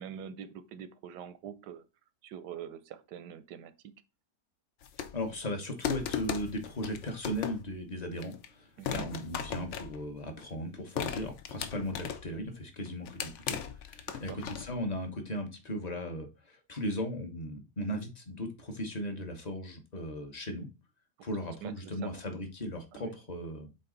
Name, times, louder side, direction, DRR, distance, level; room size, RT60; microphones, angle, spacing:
voice 1, 0.0-1.8 2.2-3.9 8.8-9.1 14.1-14.4 21.2-21.3 21.6-22.2 22.9-23.2, right 9 dB, 85° right, 1.3 m, -44 dB
sound 1, 4.8-5.3 5.8-7.7 8.2-8.5 8.8-10.5 11.0-12.4 12.8-14.8, left 8 dB, 60° left, 0.8 m, -37 dB
voice 2, 5.1-20.7 21.2-23.7, equal, 30° left, 1.0 m, -37 dB
8.1 x 3.9 x 3.8 m
omnidirectional pair, 1.8 m